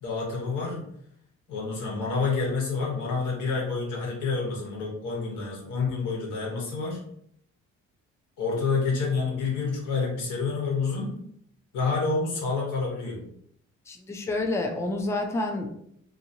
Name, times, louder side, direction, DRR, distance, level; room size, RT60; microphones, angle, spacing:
voice 1, 0.0-0.8 1.5-7.0 8.4-11.1 11.7-13.2, left 4 dB, 85° left, -3 dB, 1.2 m, -28 dB
voice 2, 13.9-15.7, left 2 dB, 10° left, 2 dB, 0.4 m, -28 dB
2.8 x 2.6 x 2.7 m, 0.70 s
cardioid pair, 90°, 30 cm